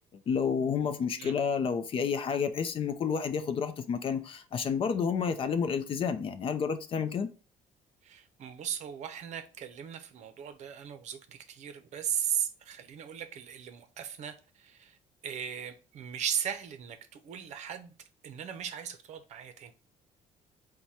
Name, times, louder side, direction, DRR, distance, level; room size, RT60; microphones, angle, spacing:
voice 1, 0.3-7.3, left 6 dB, 40° left, 0.5 m, -30 dB
voice 2, 8.0-15.0 15.2-17.9 18.2-19.7, right 9 dB, 60° right, 0.6 m, -37 dB
4.6 x 2.2 x 4.1 m
cardioid pair, 135°, 14 cm